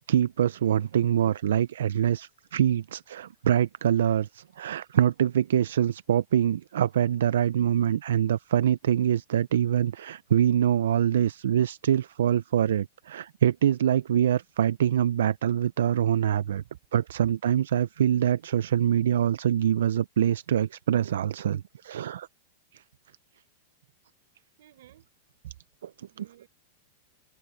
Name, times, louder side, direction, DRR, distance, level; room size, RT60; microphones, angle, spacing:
voice 1, 0.1-16.6 16.9-22.3 22.7-22.8 26.2-26.3, right 10 dB, 90° right, 0.4 m, -24 dB
voice 2, 24.6-25.1 25.4-25.6 26.1-26.5, right 13 dB, 70° right, 7.0 m, -49 dB
supercardioid pair, 150°, 0 cm